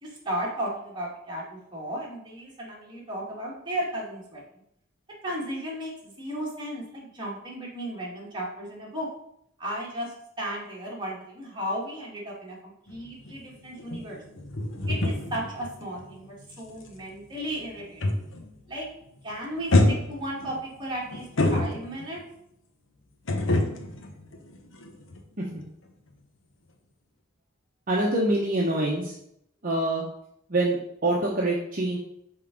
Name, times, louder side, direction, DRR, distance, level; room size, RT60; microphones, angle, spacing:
voice 1, 0.0-4.4 5.2-9.1 9.6-14.2 14.9-18.0 18.7-18.9 19.2-21.3 21.5-22.2, right 1 dB, 25° right, -4 dB, 2.0 m, -35 dB
Digger smashing concrete (edited), 12.9-18.6 18.8-19.2 19.7-22.2 23.3-25.2 25.5-25.6, left 2 dB, 70° left, 0.9 m, -28 dB
voice 2, 27.9-29.1 29.6-30.1 30.5-32.0, right 1 dB, 45° right, -3 dB, 0.9 m, -25 dB
5.6 x 3.9 x 5.1 m, 0.74 s
head